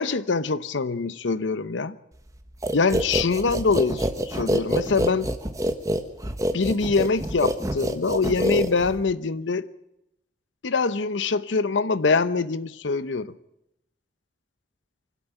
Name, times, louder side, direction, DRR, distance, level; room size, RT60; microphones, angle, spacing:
voice 1, 0.0-2.0 2.7-5.3 6.5-9.7 10.6-13.3, left 4 dB, 85° left, 0.8 m, -24 dB
sound 1, 2.6-9.1, equal, 20° right, 1.2 m, -26 dB
24.5 x 12.5 x 8.9 m
head